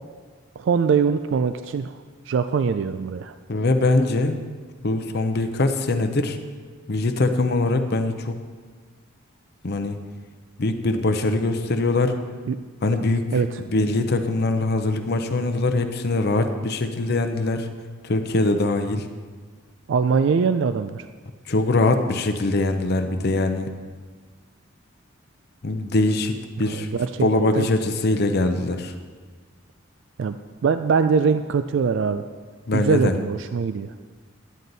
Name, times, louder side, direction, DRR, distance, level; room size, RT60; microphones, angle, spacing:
voice 1, 0.6-2.0 2.3-3.3 12.5-12.6 13.3-13.6 19.9-21.1 26.6-27.3 27.6-27.7 30.2-30.4 30.6-32.2 32.7-33.9, right 5 dB, 60° right, 10 dB, 0.3 m, -22 dB
voice 2, 3.5-4.4 4.8-6.4 6.9-8.4 9.6-10.0 10.6-12.2 12.8-13.3 13.7-17.7 18.0-19.1 21.5-23.7 25.6-26.9 27.2-28.9 32.7-33.2, left 2 dB, 50° left, 7 dB, 0.6 m, -22 dB
11.0 x 9.2 x 4.0 m, 1.5 s
head